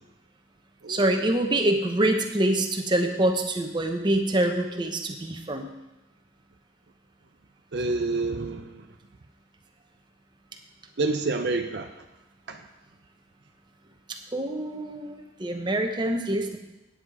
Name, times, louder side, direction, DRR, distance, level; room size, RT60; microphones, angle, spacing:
voice 1, 0.9-5.7 14.3-16.6, right 1 dB, 25° right, 4 dB, 0.9 m, -25 dB
voice 2, 7.7-8.8 11.0-11.9 12.5-12.6, right 3 dB, 55° right, 6 dB, 0.6 m, -28 dB
9.6 x 8.0 x 4.7 m, 0.99 s
head